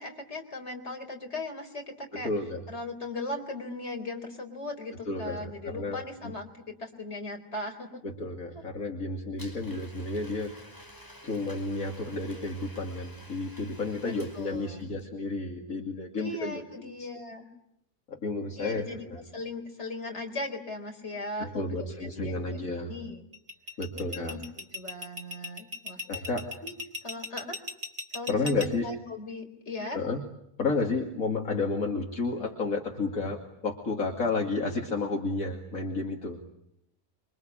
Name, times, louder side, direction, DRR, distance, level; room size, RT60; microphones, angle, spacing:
voice 1, 0.0-2.3 2.7-8.0 14.0-14.8 16.2-17.5 18.6-23.2 23.9-24.4 24.7-26.0 26.6-26.7 27.0-27.6 28.1-30.0, left 2 dB, 45° left, 3 dB, 4.4 m, -38 dB
voice 2, 2.1-2.6 5.0-6.3 8.0-10.5 11.2-17.1 18.1-19.2 21.4-22.9 23.8-24.4 26.1-26.5 28.3-28.9 29.9-30.2 30.6-36.4, left 3 dB, 65° left, 1 dB, 2.9 m, -31 dB
Domestic sounds home sounds, 9.4-15.0, equal, 15° left, 4.8 m, -50 dB
sound 1, 23.3-28.7, left 2 dB, 40° right, 2.6 m, -37 dB
27.0 x 24.5 x 8.8 m, 0.79 s
omnidirectional pair, 1.6 m